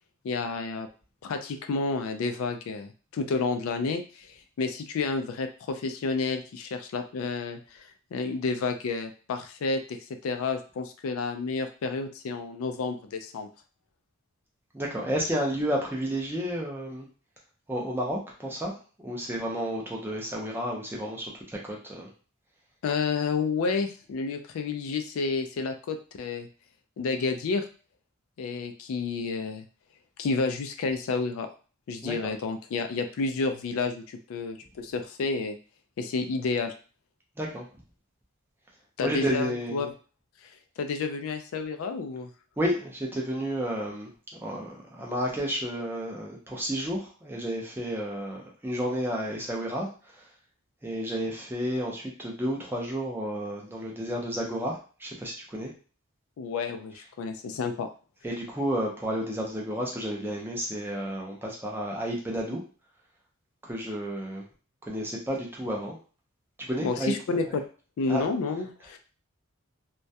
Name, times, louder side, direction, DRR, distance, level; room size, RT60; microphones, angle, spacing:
voice 1, 0.2-0.9 1.2-13.5 22.8-26.5 27.0-27.6 28.4-29.6 30.2-31.5 31.9-35.6 36.0-36.7 39.0-39.9 40.4-40.5 40.8-42.3 56.4-57.9 66.8-67.4 68.0-69.0, left 4 dB, 75° left, 7 dB, 0.3 m, -30 dB
voice 2, 14.7-17.1 17.7-18.7 19.0-22.1 32.0-32.1 37.4-37.7 39.0-39.9 42.6-44.1 44.4-49.9 50.8-55.7 58.2-62.6 63.6-64.4 64.8-66.0 66.7-67.1 68.1-68.3, equal, 10° right, -2 dB, 0.4 m, -31 dB
2.2 x 2.1 x 2.6 m, 0.38 s
head